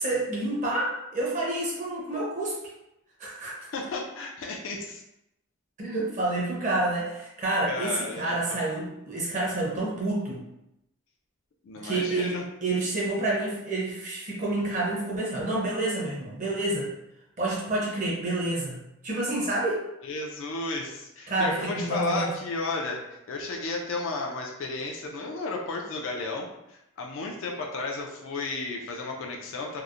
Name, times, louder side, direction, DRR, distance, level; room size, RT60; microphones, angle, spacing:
voice 1, 0.0-2.6 3.2-3.5 5.8-10.4 11.8-16.9 17.4-18.8 19.0-19.8 21.3-22.3, right 2 dB, 35° right, -5 dB, 0.6 m, -28 dB
voice 2, 3.7-5.0 7.7-8.6 11.6-12.5 20.0-29.8, left 3 dB, 70° left, 0 dB, 0.4 m, -33 dB
2.8 x 2.0 x 2.4 m, 0.86 s
head